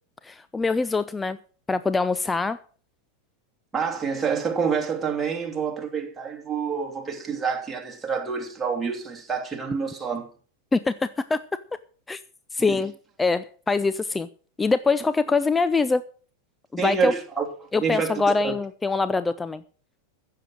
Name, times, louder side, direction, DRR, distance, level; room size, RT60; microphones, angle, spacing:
voice 1, 0.2-1.4 1.7-2.6 10.7-11.4 12.1-12.2 12.5-12.9 13.2-14.3 14.6-16.0 16.7-17.1 17.7-19.6, left 4 dB, 10° left, 0.6 m, -24 dB
voice 2, 3.7-10.3 12.7-12.8 16.8-17.5 17.8-18.5, right 6 dB, 15° right, 2.8 m, -27 dB
15.0 x 7.7 x 6.4 m
figure-of-eight pair, 90°, 0 cm